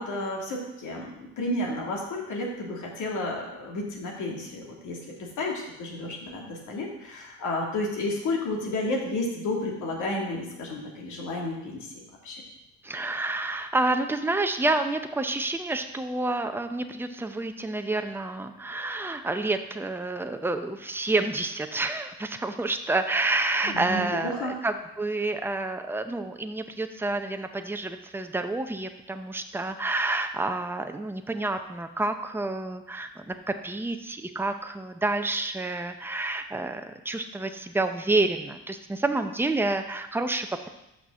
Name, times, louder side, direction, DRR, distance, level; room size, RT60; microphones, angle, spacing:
voice 1, 0.0-12.0 12.2-12.4 23.6-24.6, left 2 dB, 80° left, -1 dB, 2.3 m, -32 dB
voice 2, 12.8-40.7, right 2 dB, 5° right, 7 dB, 0.7 m, -29 dB
6.0 x 5.9 x 6.3 m, 0.90 s
cardioid pair, 90°, 30 cm